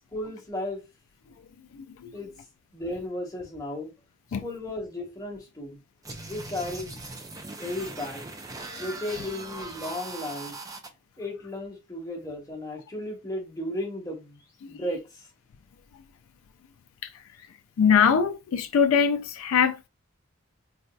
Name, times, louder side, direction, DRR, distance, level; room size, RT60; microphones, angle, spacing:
voice 1, 0.1-0.8 2.1-2.3 2.7-3.9 4.4-5.8 6.3-7.1 7.6-8.2 8.8-10.5 11.2-14.4 14.7-15.3, left 1 dB, 15° left, 1.1 m, -34 dB
voice 2, 1.7-2.1 4.3-4.5 14.7-14.8 17.0-17.2 17.8-19.9, left 7 dB, 75° left, 0.3 m, -23 dB
sound 1, 6.0-10.9, right 2 dB, 15° right, 0.4 m, -40 dB
3.9 x 2.6 x 2.3 m
head